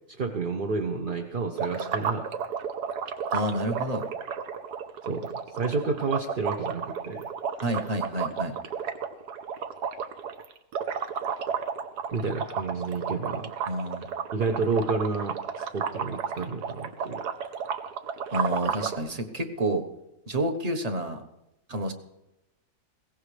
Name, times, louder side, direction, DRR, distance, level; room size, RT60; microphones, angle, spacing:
voice 1, 0.2-2.3 5.1-7.3 12.1-13.5 14.3-17.2, right 4 dB, 50° right, 4 dB, 0.7 m, -30 dB
sound 1, 1.6-19.0, right 7 dB, 75° right, 1.5 m, -32 dB
voice 2, 3.3-4.0 7.6-8.5 13.7-14.2 18.3-19.8 20.3-21.2 21.7-21.9, right 1 dB, 25° right, 6 dB, 1.1 m, -29 dB
21.0 x 17.5 x 3.3 m, 0.92 s
omnidirectional pair, 1.7 m